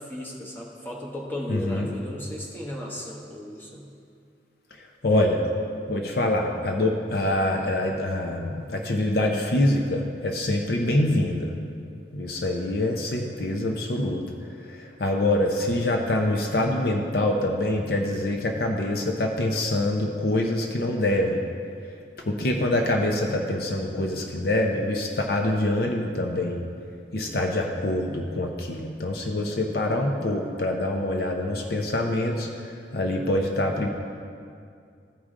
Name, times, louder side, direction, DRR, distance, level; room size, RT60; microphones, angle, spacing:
voice 1, 0.0-3.9, equal, 10° left, -3 dB, 1.1 m, -35 dB
voice 2, 1.5-1.9 4.8-5.4 5.9-11.5 12.1-14.3 14.6-21.4 22.2-26.6 27.1-33.9, left 1 dB, 55° left, 2 dB, 0.6 m, -25 dB
14.5 x 4.9 x 3.7 m, 2.3 s
head